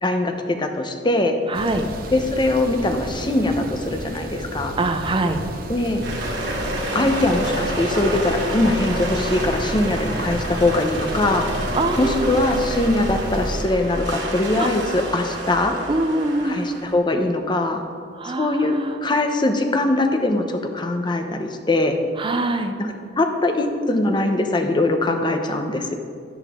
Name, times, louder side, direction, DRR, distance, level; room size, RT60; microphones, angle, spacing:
voice 1, 0.0-1.4 2.1-4.7 5.7-6.0 6.9-11.5 12.0-15.8 16.4-17.8 18.2-22.0 22.8-22.9 23.2-25.9, left 2 dB, 25° left, 5 dB, 0.8 m, -22 dB
voice 2, 1.5-1.8 4.8-5.4 11.7-12.4 14.6-14.7 15.9-16.6 18.2-19.0 22.2-22.8, right 2 dB, 30° right, 7 dB, 0.6 m, -23 dB
sound 1, 1.5-13.6, right 1 dB, 55° right, 0.9 m, -33 dB
sound 2, 6.0-16.9, right 1 dB, 80° right, 2.4 m, -28 dB
11.5 x 10.5 x 3.6 m, 2.1 s
head